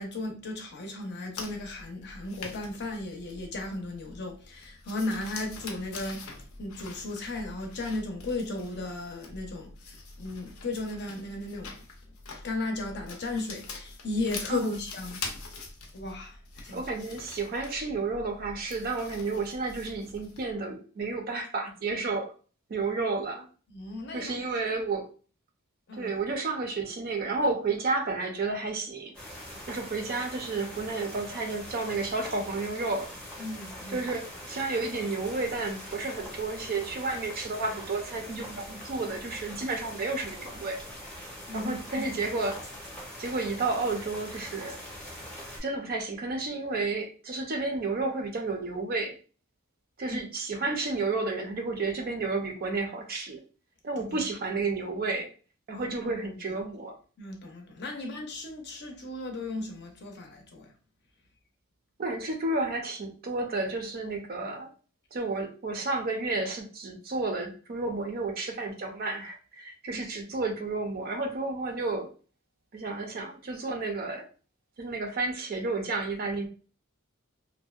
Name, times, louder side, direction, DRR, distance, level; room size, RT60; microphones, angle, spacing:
voice 1, 0.0-11.8 12.4-15.2 15.9-16.8 23.7-24.8 25.9-26.1 33.4-34.0 41.5-42.0 50.1-50.2 54.0-54.2 55.7-56.1 57.2-60.7 69.9-70.0, left 2 dB, 50° left, 0.6 m, -36 dB
sound 1, 1.4-20.5, left 3 dB, 90° left, 0.6 m, -44 dB
voice 2, 14.5-14.8 16.7-22.3 22.7-23.5 24.1-25.1 26.0-29.1 29.7-33.1 33.9-40.8 41.5-42.6 43.2-44.8 45.6-49.1 50.0-53.4 53.8-55.3 55.7-57.0 57.9-58.0 62.0-64.7 65.1-72.1 72.7-74.3 74.8-76.5, right 3 dB, 45° right, 0.4 m, -31 dB
sound 2, 29.1-45.6, equal, 5° left, 0.6 m, -43 dB
2.6 x 2.1 x 2.3 m
head